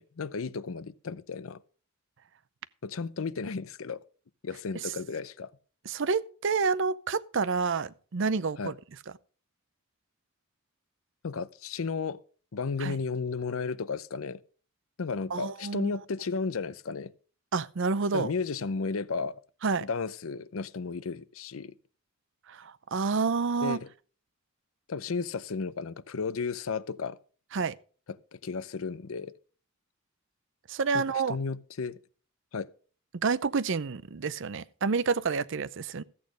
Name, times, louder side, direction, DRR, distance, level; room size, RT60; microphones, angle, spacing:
voice 1, 0.0-1.6 2.8-4.0 4.4-5.5 8.6-8.7 11.2-12.2 12.5-14.4 15.0-17.1 18.1-19.4 19.8-21.7 23.6-23.9 24.9-27.2 28.3-29.3 30.9-32.0 32.5-32.7, left 4 dB, 85° left, 0.6 m, -33 dB
voice 2, 5.9-8.7 12.8-13.0 15.3-15.9 17.5-18.3 19.6-19.9 22.5-23.8 27.5-27.8 30.7-31.4 33.1-36.0, right 4 dB, 65° right, 0.6 m, -29 dB
14.0 x 8.5 x 5.0 m
head